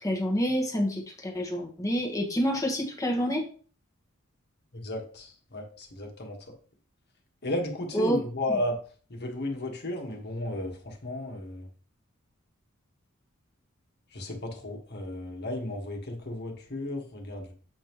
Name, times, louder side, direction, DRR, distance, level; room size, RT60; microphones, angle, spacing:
voice 1, 0.0-3.5 7.9-8.2, equal, 15° left, 0 dB, 1.4 m, -28 dB
voice 2, 4.7-6.4 7.4-8.8 9.1-11.7 14.1-17.5, left 1 dB, 50° left, 1 dB, 1.7 m, -34 dB
8.1 x 5.3 x 3.1 m, 0.41 s
head